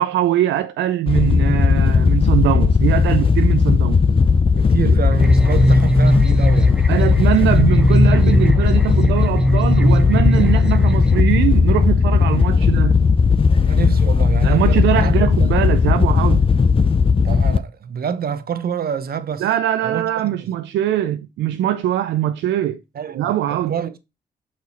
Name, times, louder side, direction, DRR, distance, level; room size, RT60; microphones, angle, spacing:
voice 1, 0.0-4.0 4.8-4.9 6.9-13.0 14.4-16.5 19.4-22.8 23.1-23.7, right 12 dB, 85° right, 0.4 m, -21 dB
Wind / Boat Water vehicle, 1.1-17.6, left 5 dB, 30° left, 0.5 m, -16 dB
voice 2, 4.6-6.7 13.6-15.6 17.2-19.4 19.8-20.1 20.4-20.5 22.9-24.0, right 8 dB, 55° right, 0.8 m, -27 dB
sound 1, 5.1-11.2, right 1 dB, 5° right, 1.0 m, -19 dB
6.0 x 4.3 x 4.1 m
cardioid pair, 65°, 18 cm